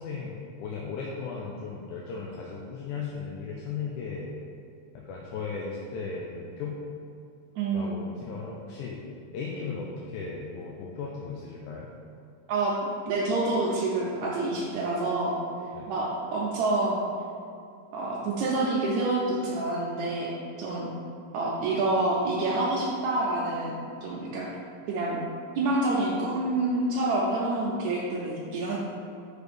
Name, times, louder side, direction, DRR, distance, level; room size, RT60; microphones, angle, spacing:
voice 1, 0.0-4.3 4.9-6.8 7.7-9.0 9.3-11.9 15.7-15.9, left 5 dB, 85° left, -3 dB, 2.1 m, -36 dB
voice 2, 7.6-8.0 12.5-12.7 13.1-15.3 15.9-17.0 17.9-20.3 20.6-20.9 21.3-24.5 24.9-25.2 25.6-28.8, right 2 dB, 75° right, -5 dB, 1.9 m, -27 dB
6.2 x 3.3 x 5.1 m, 2.5 s
omnidirectional pair, 3.4 m